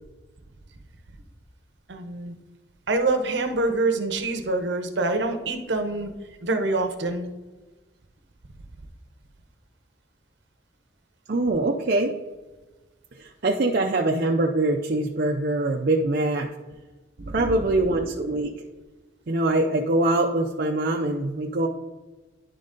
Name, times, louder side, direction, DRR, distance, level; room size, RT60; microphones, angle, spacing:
voice 1, 1.9-2.3 2.9-6.1 6.4-7.3 17.2-17.5, right 2 dB, 65° right, 6 dB, 0.8 m, -25 dB
voice 2, 11.3-12.2 13.2-16.5 17.3-18.5 19.3-21.7, right 2 dB, 50° right, 0 dB, 0.5 m, -23 dB
10.5 x 3.9 x 3.7 m, 1.2 s
head